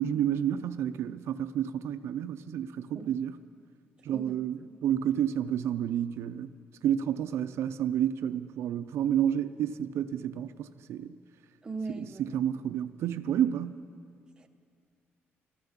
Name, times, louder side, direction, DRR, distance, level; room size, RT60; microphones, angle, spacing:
voice 1, 0.0-3.4 4.1-6.5 6.8-11.1 12.0-13.8, right 10 dB, 80° right, 11 dB, 0.4 m, -30 dB
voice 2, 11.6-12.3 14.4-14.5, right 3 dB, 20° right, 5 dB, 0.7 m, -39 dB
13.5 x 13.0 x 7.1 m, 2.2 s
cardioid pair, 165°, 4 cm